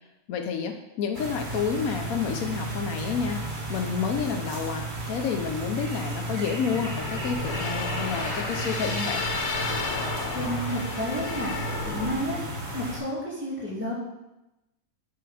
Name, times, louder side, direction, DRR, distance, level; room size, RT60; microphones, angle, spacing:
voice 1, 0.3-9.2, left 6 dB, 85° left, 6 dB, 1.2 m, -30 dB
sound 1, 1.1-13.0, right 2 dB, 35° right, 1.3 m, -33 dB
sound 2, 6.7-12.1, left 4 dB, 60° left, 1.1 m, -32 dB
voice 2, 10.3-11.5 11.8-12.4 12.7-13.9, equal, 10° right, -7 dB, 2.2 m, -31 dB
8.5 x 3.7 x 4.9 m, 0.94 s
omnidirectional pair, 1.5 m